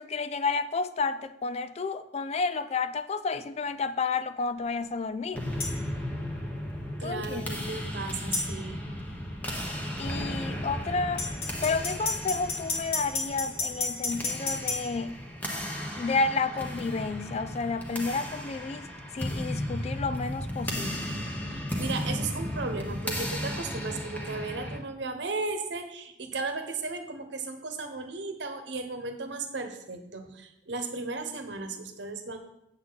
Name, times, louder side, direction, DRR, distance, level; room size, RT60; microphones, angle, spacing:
voice 1, 0.0-5.5 7.0-7.5 10.0-11.2 11.6-15.2 16.0-18.9 19.1-21.2, left 4 dB, 35° left, 0.4 m, -31 dB
sound 1, 5.3-24.8, equal, 10° left, 1.2 m, -35 dB
sound 2, 5.6-5.8 8.3-8.5 11.2-14.8, left 4 dB, 55° left, 2.2 m, -31 dB
voice 2, 7.0-8.8 21.5-32.4, right 3 dB, 75° right, 1.1 m, -35 dB
8.5 x 7.3 x 4.0 m
head